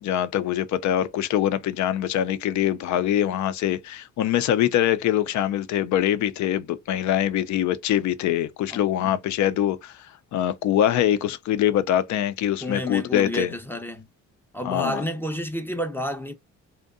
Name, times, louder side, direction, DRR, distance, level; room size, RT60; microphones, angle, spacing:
voice 1, 0.0-9.9 10.3-13.5 14.6-15.0, left 11 dB, 70° left, 0.4 m, -23 dB
voice 2, 12.6-14.1 14.5-16.3, equal, 5° left, 0.5 m, -30 dB
2.7 x 2.1 x 2.3 m
cardioid pair, 90°, 30 cm